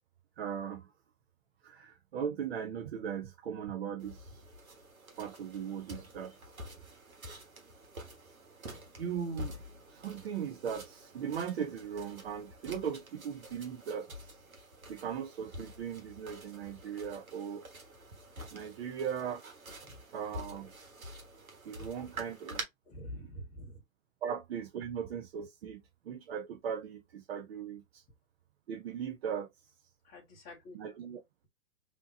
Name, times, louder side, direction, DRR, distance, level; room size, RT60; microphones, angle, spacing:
voice 1, 0.4-0.9 1.6-4.4 5.2-6.3 9.0-9.6 9.9-14.4 14.9-17.7 18.5-19.4 20.1-20.7 21.6-22.6 23.1-23.3 24.2-28.0 28.7-29.5 30.7-31.2, right 8 dB, 45° right, 0.7 m, -38 dB
sound 1, 4.0-22.6, equal, 85° right, 1.4 m, -48 dB
voice 2, 22.9-23.8 30.0-30.8, equal, 20° left, 0.8 m, -46 dB
3.5 x 2.8 x 2.7 m
figure-of-eight pair, 120°, 41 cm